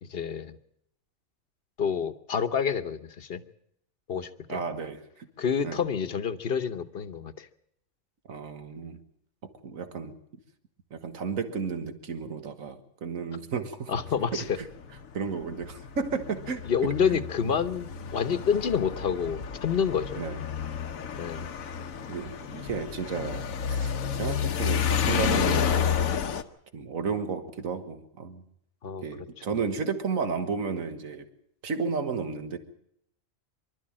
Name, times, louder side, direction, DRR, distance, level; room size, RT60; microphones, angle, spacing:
voice 1, 0.0-0.6 1.8-3.4 4.1-4.6 5.4-7.5 13.9-14.4 16.6-20.2 21.2-21.5 28.8-29.0 29.5-29.6, left 7 dB, 50° left, 11 dB, 1.1 m, -28 dB
voice 2, 4.5-5.3 5.6-5.8 8.3-9.0 9.6-10.1 10.9-13.9 14.3-14.7 15.1-17.2 20.2-20.4 22.1-25.9 26.7-28.4 29.0-31.3 31.6-32.6, right 5 dB, 80° right, 8 dB, 1.9 m, -33 dB
sound 1, 13.9-26.4, left 7 dB, 90° left, 1.4 m, -30 dB
24.5 x 12.5 x 8.7 m, 0.75 s
omnidirectional pair, 1.4 m